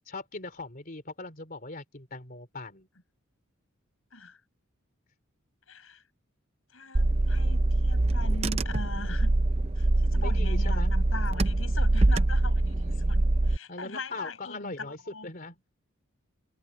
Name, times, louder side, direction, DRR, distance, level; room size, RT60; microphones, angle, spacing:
voice 1, 0.1-2.9 10.1-11.0 12.6-13.1 13.7-15.6, left 3 dB, 40° left, 3.6 m, -40 dB
voice 2, 5.7-6.0 6.7-9.3 9.8-14.9 15.1-15.3, left 3 dB, 70° left, 7.2 m, -41 dB
Car / Engine, 6.9-13.6, right 2 dB, 30° right, 0.6 m, -24 dB
head